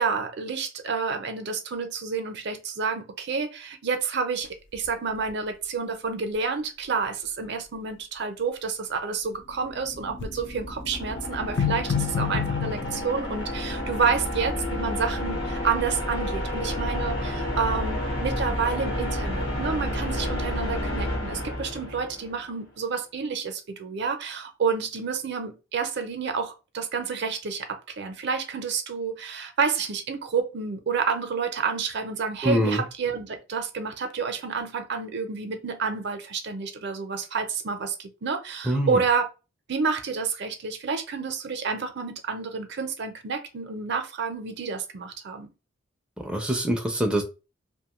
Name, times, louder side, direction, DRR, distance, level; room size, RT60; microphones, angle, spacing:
voice 1, 0.0-39.2 39.7-45.5, right 5 dB, 65° right, 0.5 m, -29 dB
sound 1, 4.9-5.0 5.3-5.4 10.2-10.6 11.4-13.0, left 7 dB, 70° left, 0.4 m, -27 dB
sound 2, 9.4-22.4, left 1 dB, 85° left, 0.9 m, -30 dB
voice 2, 32.4-32.8 38.7-39.0 46.2-47.2, right 1 dB, 5° right, 0.4 m, -24 dB
2.6 x 2.2 x 2.9 m
head